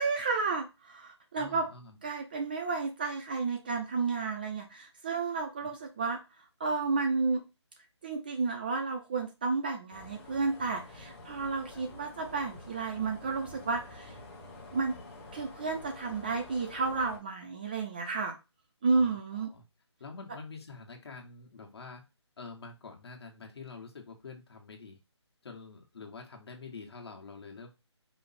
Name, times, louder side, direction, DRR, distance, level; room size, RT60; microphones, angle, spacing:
voice 1, 0.0-1.7 2.0-6.2 6.6-7.4 8.0-14.1 14.7-14.9 15.3-18.4 18.8-19.5, right 4 dB, 20° right, 3 dB, 0.4 m, -32 dB
voice 2, 1.3-2.0 5.6-5.7 11.7-11.8 18.9-19.6 20.0-22.0 22.4-25.0 25.4-27.8, left 4 dB, 60° left, 1 dB, 1.3 m, -47 dB
sound 1, 9.9-17.2, left 2 dB, 25° left, 1.3 m, -48 dB
5.0 x 2.1 x 4.1 m, 0.26 s
figure-of-eight pair, 155°, 15 cm